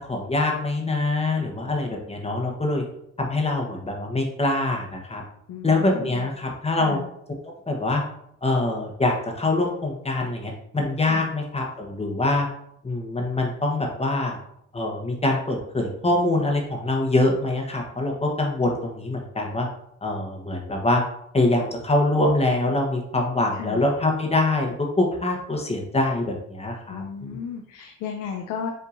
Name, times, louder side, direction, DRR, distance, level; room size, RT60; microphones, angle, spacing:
voice 1, 0.0-2.8 3.2-5.2 5.6-7.0 7.7-8.0 8.4-12.5 12.8-14.4 14.7-19.7 20.0-21.0 21.3-27.4, left 2 dB, 20° left, 0 dB, 1.0 m, -24 dB
voice 2, 5.5-6.3 6.8-7.1 11.1-11.3 23.5-23.8 26.9-28.7, left 7 dB, 90° left, 3 dB, 0.6 m, -34 dB
5.6 x 3.6 x 2.5 m, 0.72 s
cardioid pair, 90°, 30 cm